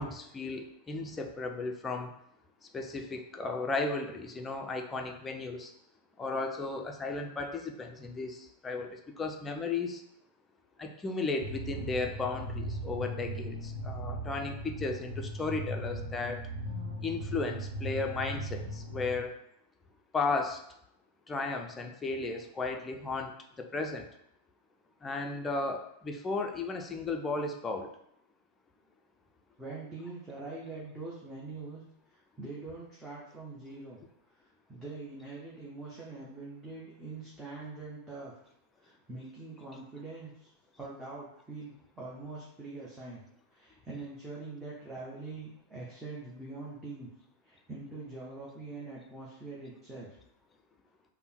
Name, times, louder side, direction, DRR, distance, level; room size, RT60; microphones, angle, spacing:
voice 1, 0.0-2.1 2.7-5.7 6.2-10.0 10.8-16.4 17.0-19.3 20.1-20.6 21.3-23.3 23.6-24.0 25.0-27.9, left 3 dB, 15° left, 3 dB, 0.5 m, -35 dB
sound 1, 11.4-19.2, right 1 dB, 65° right, 0.7 m, -38 dB
voice 2, 29.6-31.8 32.1-34.0 34.7-38.4 38.8-40.5 40.8-43.2 43.5-47.1 47.4-50.2, right 3 dB, 10° right, -7 dB, 0.8 m, -43 dB
3.5 x 2.2 x 4.3 m, 0.75 s
figure-of-eight pair, 90°, 0 cm